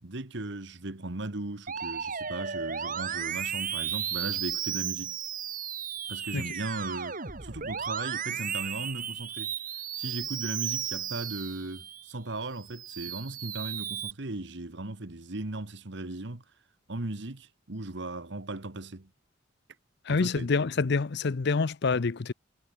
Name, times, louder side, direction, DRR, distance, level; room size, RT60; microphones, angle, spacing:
voice 1, 0.0-5.2 6.1-9.5 9.9-16.4 16.9-19.1 20.1-20.5, right 2 dB, 65° right, 1.6 m, -37 dB
Musical instrument, 1.7-12.1 12.5-14.1, right 8 dB, 45° right, 3.1 m, -34 dB
voice 2, 20.1-22.3, left 4 dB, 60° left, 0.6 m, -27 dB
head